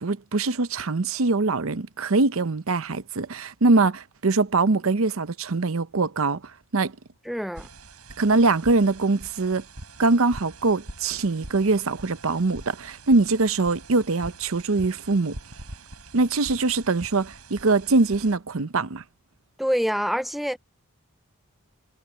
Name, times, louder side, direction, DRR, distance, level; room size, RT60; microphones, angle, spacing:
voice 1, 0.0-6.4 6.7-6.9 8.2-9.6 10.0-15.4 16.1-19.0, right 3 dB, 65° right, 0.8 m, -23 dB
voice 2, 7.3-7.7 19.6-20.6, equal, ahead, 0.3 m, -26 dB
sound 1, 7.5-18.4, right 2 dB, 85° right, 7.2 m, -44 dB
head